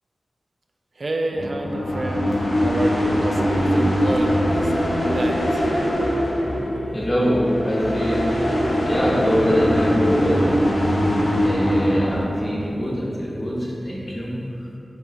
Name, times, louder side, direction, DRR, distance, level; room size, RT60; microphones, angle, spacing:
voice 1, 1.0-4.7 5.0-5.6, right 2 dB, 55° right, 3 dB, 0.3 m, -28 dB
sound 1, 1.3-12.4, equal, 80° left, 0.8 m, -22 dB
voice 2, 6.9-8.4 8.8-10.4 11.4-14.3, equal, 25° left, -5 dB, 0.8 m, -23 dB
5.7 x 2.8 x 2.6 m, 2.6 s
wide cardioid pair, 105°, 0 cm